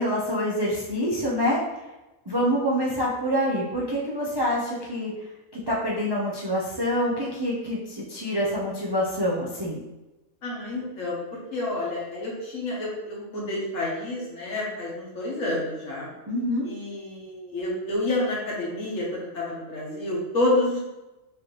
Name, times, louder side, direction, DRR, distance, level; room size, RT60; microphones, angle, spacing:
voice 1, 0.0-1.6 2.3-5.1 5.5-9.8 16.3-16.7, equal, 35° right, -5 dB, 0.4 m, -26 dB
voice 2, 10.4-11.2 11.5-16.1 16.6-20.8, left 2 dB, 70° left, -4 dB, 1.5 m, -29 dB
4.9 x 2.9 x 3.1 m, 1.0 s
omnidirectional pair, 1.4 m